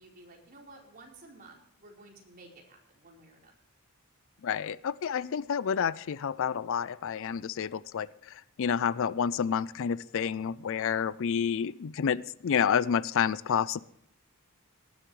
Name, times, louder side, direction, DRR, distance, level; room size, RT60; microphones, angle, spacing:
voice 1, 0.0-3.5, right 2 dB, 40° right, -1 dB, 4.2 m, -53 dB
voice 2, 4.4-8.1 8.6-13.8, left 7 dB, 60° left, 20 dB, 0.4 m, -29 dB
19.5 x 11.0 x 3.2 m, 0.75 s
head